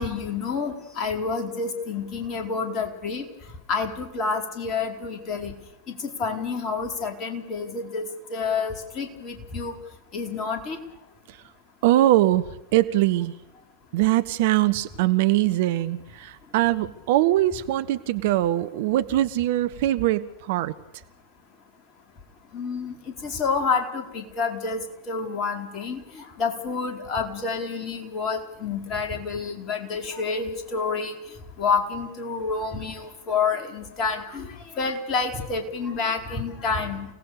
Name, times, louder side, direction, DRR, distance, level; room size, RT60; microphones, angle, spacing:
voice 1, 0.0-3.2 3.7-5.5 6.2-8.0 8.3-9.7 10.1-10.8 22.5-22.9 23.2-26.0 26.4-31.1 31.6-34.5 34.8-37.1, left 5 dB, 30° left, 4 dB, 4.6 m, -28 dB
voice 2, 11.8-12.4 12.7-13.3 13.9-20.7, right 15 dB, 50° right, 12 dB, 1.1 m, -22 dB
30.0 x 18.5 x 6.8 m, 0.88 s
figure-of-eight pair, 90°, 0 cm